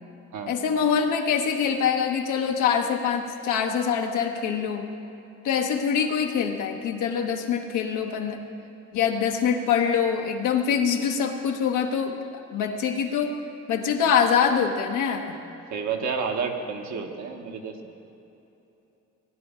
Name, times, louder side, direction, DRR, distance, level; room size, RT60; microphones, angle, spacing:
voice 1, 0.5-4.9 5.4-8.4 8.9-12.2 12.5-13.3 13.7-15.4, left 7 dB, 85° left, 3 dB, 1.1 m, -24 dB
voice 2, 15.7-17.8, right 5 dB, 70° right, 3 dB, 1.3 m, -30 dB
17.0 x 10.0 x 3.7 m, 3.0 s
cardioid pair, 90°, 30 cm